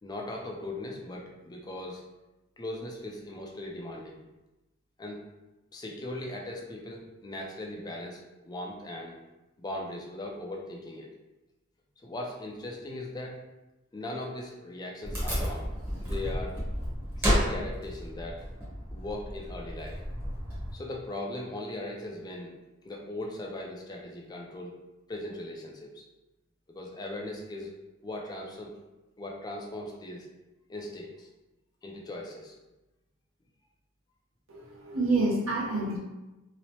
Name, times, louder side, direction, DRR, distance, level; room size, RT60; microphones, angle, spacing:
voice 1, 0.0-2.0 2.6-4.2 5.0-5.2 5.7-9.2 9.6-11.1 12.0-13.4 13.9-15.7 16.0-16.6 17.2-18.4 18.9-20.0 20.7-22.5 22.8-24.8 25.1-26.0 26.7-27.7 28.0-28.7 29.2-30.3 30.7-31.3 31.8-32.6, left 1 dB, 20° left, -1 dB, 0.3 m, -39 dB
Wood, 15.0-20.7, equal, 10° right, 0.8 m, -32 dB
voice 2, 34.5-36.0, right 2 dB, 70° right, -4 dB, 0.7 m, -28 dB
2.9 x 2.0 x 2.7 m, 1.0 s
head